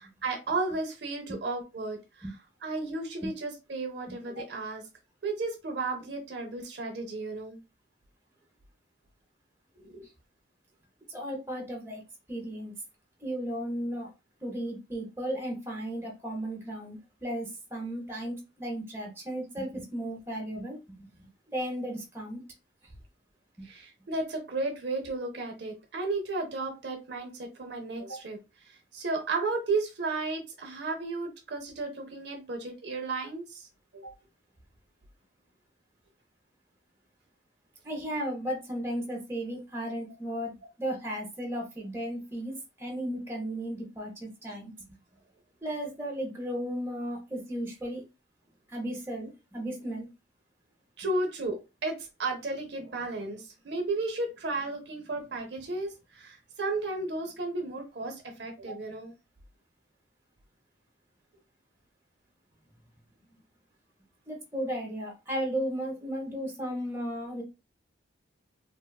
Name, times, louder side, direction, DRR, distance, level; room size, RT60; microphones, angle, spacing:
voice 1, 0.2-2.3 2.6-4.8 5.2-7.6 9.8-10.1 23.6-28.4 28.7-33.7 33.9-34.1 51.0-59.1, right 3 dB, 60° right, 3 dB, 0.6 m, -34 dB
voice 2, 11.1-12.0 12.3-12.7 13.2-14.1 14.4-22.4 37.8-40.5 40.8-44.7 45.6-48.0 48.7-50.1 64.3-67.4, equal, 15° right, -1 dB, 0.7 m, -35 dB
2.8 x 2.2 x 2.3 m, 0.27 s
head